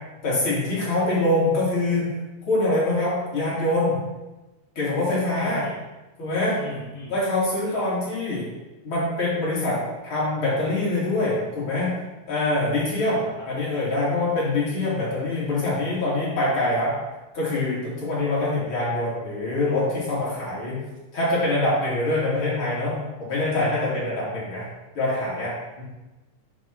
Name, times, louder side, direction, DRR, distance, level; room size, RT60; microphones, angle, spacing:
voice 1, 0.2-2.1 2.4-4.0 4.8-5.7 6.2-6.6 7.1-8.5 8.8-9.8 10.0-11.9 12.3-13.2 13.5-16.9 17.3-20.8 21.1-24.7 25.0-25.8, left 2 dB, 45° left, -7 dB, 2.7 m, -24 dB
voice 2, 5.4-5.8 6.6-7.2 7.7-7.8 13.1-13.5, left 2 dB, 70° left, -4 dB, 2.1 m, -39 dB
7.2 x 3.0 x 5.8 m, 1.1 s
omnidirectional pair, 3.6 m